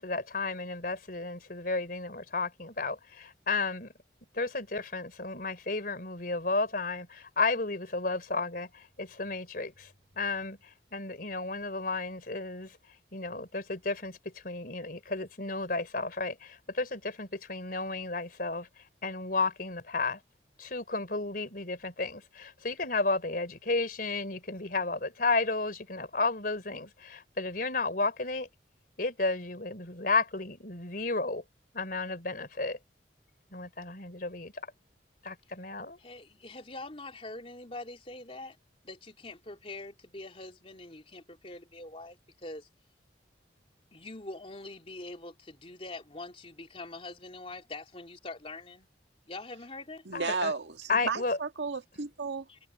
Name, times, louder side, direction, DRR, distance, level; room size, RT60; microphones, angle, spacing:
voice 1, 0.0-3.9 4.3-9.9 10.2-12.8 13.1-18.7 19.0-20.2 20.6-28.5 29.0-31.4 31.7-32.8 33.5-34.7 35.2-36.0 50.1-50.5 50.9-51.4, left 3 dB, 50° left, 4.3 m, -32 dB
voice 2, 36.0-38.6 38.8-42.7 43.9-48.9 49.3-50.0 52.5-52.6, left 2 dB, 35° left, 3.6 m, -44 dB
voice 3, 50.1-52.5, right 4 dB, 80° right, 1.9 m, -33 dB
head